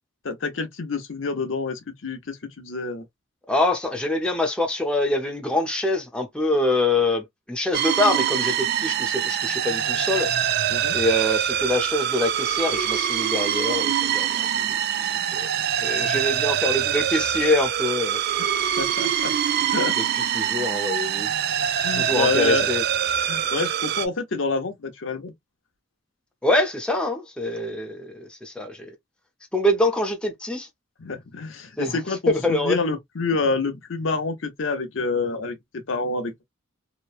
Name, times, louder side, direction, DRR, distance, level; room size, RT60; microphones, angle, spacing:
voice 1, 0.2-3.0 10.7-11.0 16.1-16.2 18.8-19.3 19.7-19.9 21.8-22.7 23.3-25.3 31.0-36.4, left 3 dB, 70° left, 0.8 m, -27 dB
voice 2, 3.5-10.5 10.9-14.8 15.3-15.5 15.8-18.2 20.0-20.1 20.3-21.3 22.0-22.8 26.4-28.9 29.5-30.7 31.8-32.0 32.3-32.8, left 1 dB, 5° left, 0.6 m, -25 dB
sound 1, 7.7-24.1, right 9 dB, 55° right, 0.3 m, -24 dB
3.0 x 2.1 x 2.4 m
head